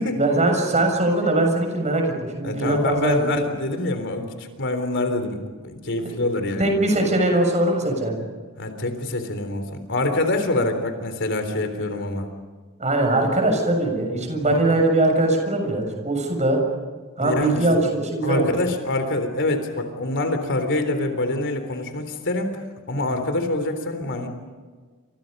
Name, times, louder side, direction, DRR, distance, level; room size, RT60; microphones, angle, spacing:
voice 1, 0.2-3.4 6.6-8.2 10.6-10.7 12.8-16.6 17.2-18.5, right 2 dB, 35° right, 3 dB, 7.0 m, -21 dB
voice 2, 2.4-6.7 8.6-12.3 14.4-14.7 17.2-17.8 18.2-22.6 22.9-24.3, left 2 dB, 60° left, 7 dB, 3.7 m, -25 dB
30.0 x 27.5 x 5.5 m, 1.4 s
head